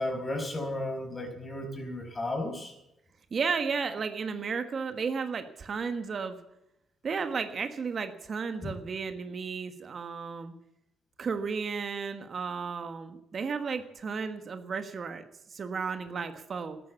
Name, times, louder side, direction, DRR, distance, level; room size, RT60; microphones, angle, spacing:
voice 1, 0.0-2.7 8.6-8.7, left 1 dB, 25° left, 5 dB, 5.1 m, -34 dB
voice 2, 3.3-6.4 7.0-10.5 11.2-15.2 15.5-16.8, right 5 dB, 45° right, 8 dB, 1.4 m, -33 dB
14.0 x 11.0 x 8.4 m, 0.84 s
cardioid pair, 90°, 0 cm